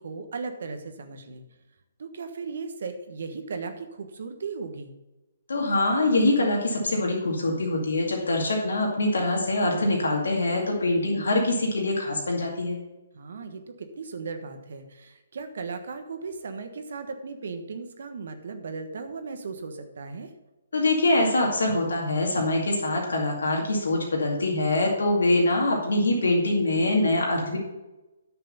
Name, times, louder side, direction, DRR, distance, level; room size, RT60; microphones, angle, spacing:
voice 1, 0.0-1.4 2.0-4.9 13.1-20.3, right 4 dB, 65° right, 8 dB, 1.4 m, -37 dB
voice 2, 5.5-12.8 20.7-27.6, left 2 dB, 75° left, 0 dB, 2.2 m, -24 dB
9.8 x 6.7 x 5.5 m, 1.0 s
figure-of-eight pair, 135°, 0 cm